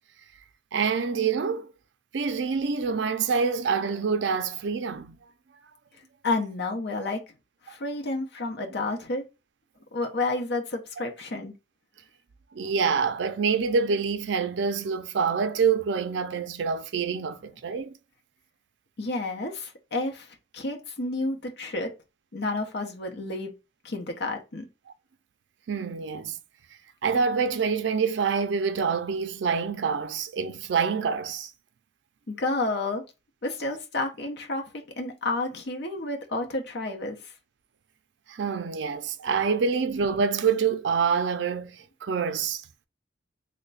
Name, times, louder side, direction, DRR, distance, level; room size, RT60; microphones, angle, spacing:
voice 1, 0.7-1.7 2.1-5.2 12.5-18.0 25.7-26.4 27.0-31.5 38.3-42.6, right 5 dB, 70° right, 0.4 m, -26 dB
voice 2, 6.2-7.2 7.6-9.2 9.9-11.5 19.0-20.3 20.5-21.9 22.3-23.5 23.8-24.6 32.3-33.0 33.4-34.6 35.0-37.2, left 2 dB, 60° left, 0.7 m, -30 dB
3.2 x 2.2 x 3.9 m
head